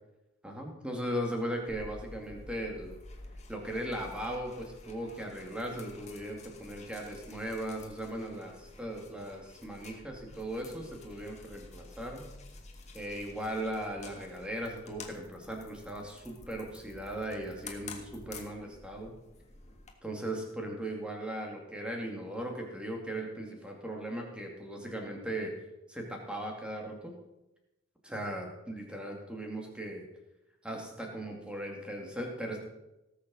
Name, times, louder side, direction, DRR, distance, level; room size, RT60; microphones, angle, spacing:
voice 1, 0.4-3.0 3.5-12.3 12.9-19.1 20.0-25.5 25.9-27.1 28.0-30.0 30.6-32.6, right 1 dB, 5° right, 0 dB, 2.2 m, -38 dB
sound 1, 1.7-19.9, left 3 dB, 30° left, 1.6 m, -50 dB
18.0 x 6.7 x 6.2 m, 0.95 s
head